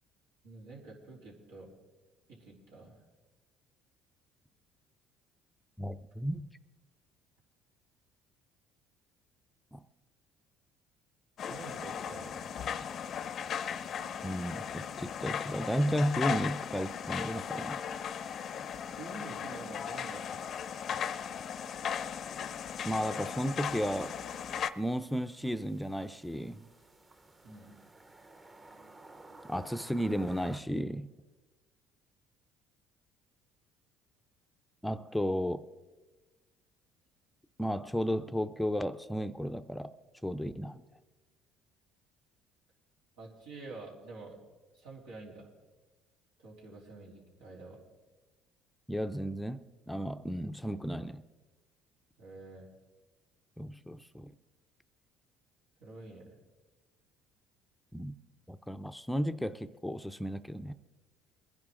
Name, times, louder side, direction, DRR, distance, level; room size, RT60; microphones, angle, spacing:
voice 1, 0.4-1.7 2.3-3.1 11.4-12.7 18.9-20.4 27.4-27.8 43.2-44.4 44.7-45.5 46.4-47.8 52.2-52.7 55.8-56.4, right 3 dB, 90° right, 3.6 m, -48 dB
voice 2, 5.8-6.5 9.7-9.8 14.2-17.8 22.8-24.2 24.8-26.7 29.5-31.1 34.8-35.6 37.6-39.9 40.2-40.8 48.9-51.2 53.6-54.3 57.9-58.2 58.5-60.7, equal, 5° left, 0.5 m, -34 dB
sound 1, 11.4-24.7, left 8 dB, 50° left, 0.5 m, -37 dB
sound 2, 22.5-30.6, right 2 dB, 20° right, 0.8 m, -56 dB
22.0 x 10.5 x 3.8 m
cardioid pair, 100°, 0 cm